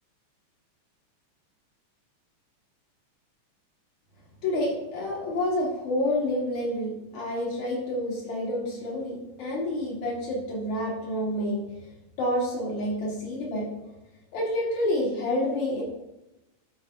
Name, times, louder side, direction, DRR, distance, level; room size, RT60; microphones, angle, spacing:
voice 1, 4.4-11.6 12.2-13.7 14.3-15.8, left 1 dB, 65° left, -4 dB, 4.3 m, -28 dB
11.5 x 4.5 x 5.8 m, 0.95 s
omnidirectional pair, 3.4 m